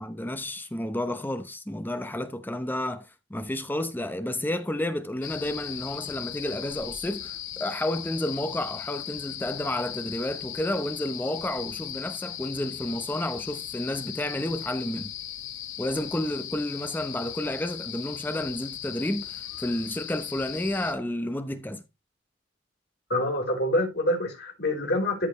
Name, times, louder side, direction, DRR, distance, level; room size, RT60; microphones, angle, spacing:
voice 1, 0.0-15.1 15.8-21.8, left 1 dB, 10° left, 0.8 m, -31 dB
sound 1, 5.2-20.9, left 11 dB, 85° left, 1.2 m, -38 dB
voice 2, 23.1-25.3, left 1 dB, 60° left, 3.9 m, -26 dB
13.5 x 5.0 x 3.2 m
head